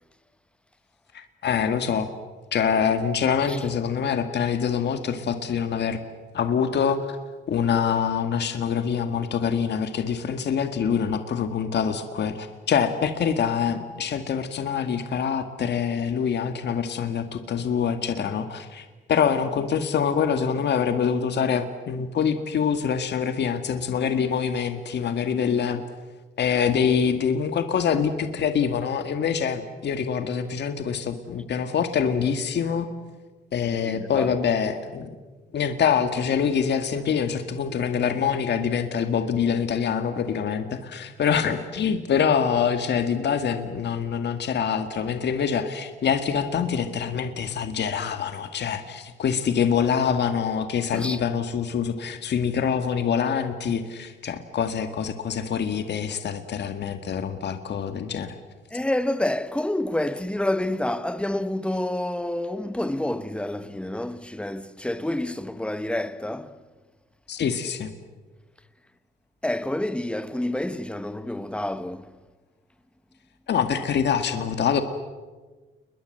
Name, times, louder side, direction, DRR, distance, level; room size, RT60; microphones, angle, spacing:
voice 1, 1.1-2.1 2.5-6.0 6.3-7.2 7.5-25.8 26.4-32.9 33.5-35.1 35.5-58.4 67.3-67.9 73.5-74.8, left 7 dB, 60° left, 1.8 m, -25 dB
voice 2, 33.8-34.3 50.9-51.2 58.7-66.6 69.4-72.1, left 1 dB, 5° left, 1.3 m, -28 dB
29.5 x 21.5 x 7.7 m
cardioid pair, 90°, 20 cm